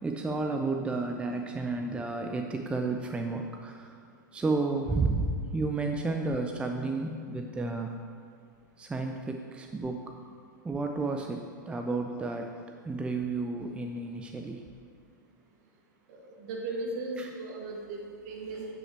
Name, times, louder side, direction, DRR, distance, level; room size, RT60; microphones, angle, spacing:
voice 1, 0.0-4.0 4.3-8.0 8.8-10.1 10.6-14.7 17.2-17.3, right 3 dB, 10° right, 4 dB, 0.4 m, -32 dB
voice 2, 16.1-18.7, right 2 dB, 55° right, 0 dB, 1.7 m, -37 dB
8.5 x 5.6 x 4.3 m, 2.2 s
hypercardioid pair, 110°, 11 cm